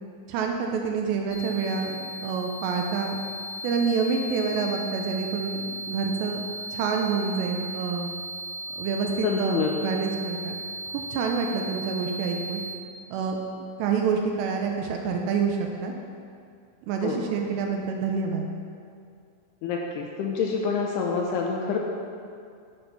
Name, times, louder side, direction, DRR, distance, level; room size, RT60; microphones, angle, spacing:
voice 1, 0.3-3.2 3.6-6.4 6.7-8.1 8.8-10.6 10.9-12.6 13.1-13.4 13.8-15.9 16.9-18.5, right 5 dB, 80° right, 2 dB, 2.7 m, -27 dB
sound 1, 1.3-12.7, right 1 dB, 55° left, 1.3 m, -36 dB
voice 2, 9.2-9.9 17.0-17.3 19.6-21.8, left 5 dB, 80° left, -1 dB, 2.5 m, -27 dB
14.0 x 5.3 x 5.7 m, 2.3 s
omnidirectional pair, 5.3 m